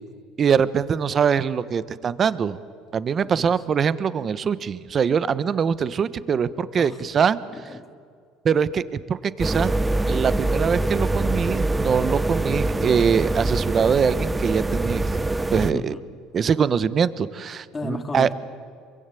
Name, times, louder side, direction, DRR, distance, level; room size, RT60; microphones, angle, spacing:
voice 1, 0.4-2.6 2.9-7.4 8.4-9.7 10.1-15.0 15.5-15.9 16.3-18.3, right 7 dB, 35° right, 16 dB, 1.1 m, -23 dB
voice 2, 3.2-3.6 6.8-7.0 7.5-7.8 15.6-16.0 17.7-18.3, left 3 dB, 20° left, 5 dB, 2.4 m, -34 dB
sound 1, 9.4-15.7, right 2 dB, 10° right, 0.8 m, -24 dB
27.5 x 23.0 x 9.2 m, 2.1 s
supercardioid pair, 110°, 0 cm